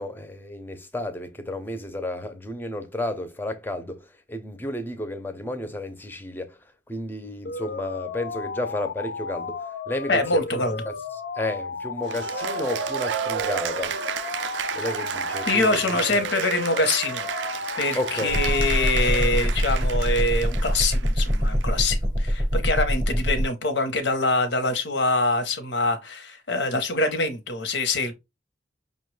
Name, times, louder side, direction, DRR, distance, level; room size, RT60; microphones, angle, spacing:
voice 1, 0.0-6.6 6.9-10.9 11.4-14.0 14.7-16.0 17.9-18.4, left 1 dB, 10° left, 0.5 m, -32 dB
sound 1, 7.4-19.4, left 4 dB, 65° left, 0.5 m, -34 dB
voice 2, 10.1-10.8 15.5-17.3 17.8-28.1, left 2 dB, 80° left, 0.8 m, -24 dB
Cheering / Applause, 12.1-21.6, right 8 dB, 85° right, 0.3 m, -32 dB
sound 2, 18.3-23.5, equal, 25° right, 0.7 m, -24 dB
5.5 x 2.2 x 3.1 m
head